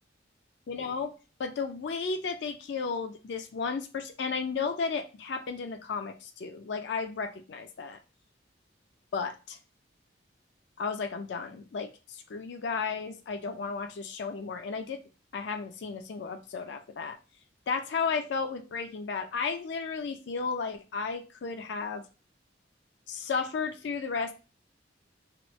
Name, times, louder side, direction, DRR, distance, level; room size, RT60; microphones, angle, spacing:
voice 1, 0.7-1.1 1.4-8.0 9.1-9.6 10.8-15.0 15.3-17.2 17.7-22.0 23.1-24.3, left 5 dB, 65° left, 6 dB, 0.4 m, -33 dB
3.0 x 2.0 x 3.0 m, 0.31 s
head